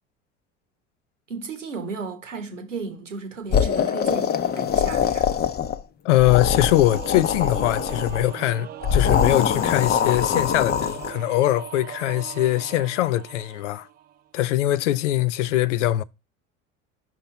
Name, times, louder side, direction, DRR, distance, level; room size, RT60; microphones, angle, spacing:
voice 1, 1.3-5.2, right 4 dB, 90° right, 1.1 m, -34 dB
sound 1, 3.5-5.8 6.1-8.3 8.8-11.1, left 8 dB, 25° left, 0.6 m, -23 dB
voice 2, 6.0-13.9 14.3-16.0, left 15 dB, 75° left, 0.5 m, -22 dB
Singing / Musical instrument, 6.5-14.3, right 10 dB, 25° right, 0.4 m, -39 dB
5.8 x 2.9 x 5.6 m
hypercardioid pair, 70°, 36 cm